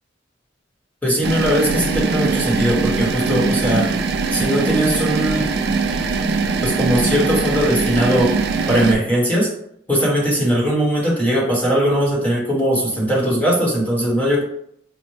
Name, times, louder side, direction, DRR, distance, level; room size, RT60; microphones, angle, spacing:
voice 1, 1.0-3.9 4.3-5.5 6.6-8.3 8.7-9.5 9.9-14.4, equal, 10° left, -4 dB, 0.9 m, -19 dB
sound 1, 1.2-9.0, right 4 dB, 55° right, 0.4 m, -21 dB
5.3 x 2.1 x 3.1 m, 0.71 s
head